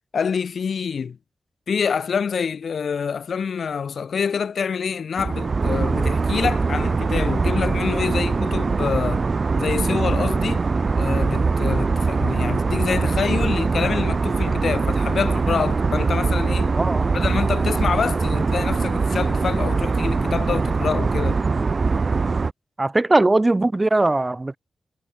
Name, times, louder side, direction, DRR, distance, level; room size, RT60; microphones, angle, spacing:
voice 1, 0.1-1.2 1.7-9.3 9.6-10.6 10.9-16.8 17.1-21.4, left 6 dB, 75° left, 2.6 m, -26 dB
sound 1, 5.2-22.5, right 4 dB, 45° right, 2.3 m, -22 dB
voice 2, 22.8-24.6, right 2 dB, 20° right, 7.3 m, -19 dB
wide cardioid pair, 100°, 0 cm